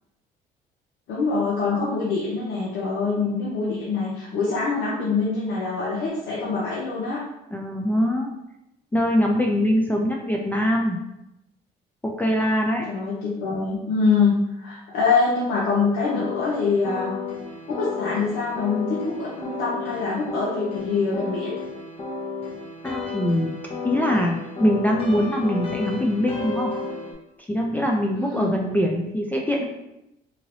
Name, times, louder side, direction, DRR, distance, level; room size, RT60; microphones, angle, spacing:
voice 1, 1.1-7.2 12.9-17.1 17.7-21.5 28.1-28.5, left 4 dB, 90° left, -6 dB, 0.7 m, -24 dB
voice 2, 7.5-8.3 8.9-11.0 12.0-12.8 22.8-23.5 23.8-26.7 27.5-29.7, equal, 10° left, 0 dB, 0.3 m, -23 dB
sound 1, 16.0-27.1, left 4 dB, 35° left, 0.8 m, -33 dB
3.1 x 2.8 x 2.6 m, 0.87 s
cardioid pair, 110°, 17 cm